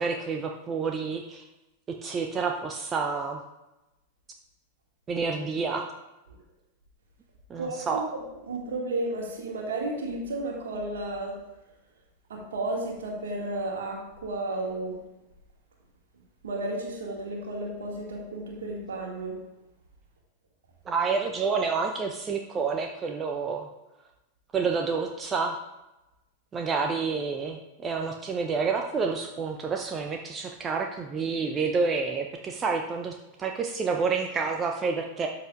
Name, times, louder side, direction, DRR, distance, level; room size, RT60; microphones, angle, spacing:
voice 1, 0.0-1.5 2.0-3.4 5.1-5.9 7.5-8.0 20.9-23.7 24.5-25.6 26.5-35.3, right 5 dB, 25° right, 3 dB, 0.6 m, -29 dB
voice 2, 7.6-11.4 12.3-15.0 16.4-19.4, right 2 dB, 65° right, -1 dB, 2.0 m, -33 dB
12.0 x 6.8 x 2.5 m, 0.98 s
figure-of-eight pair, 90°, 0 cm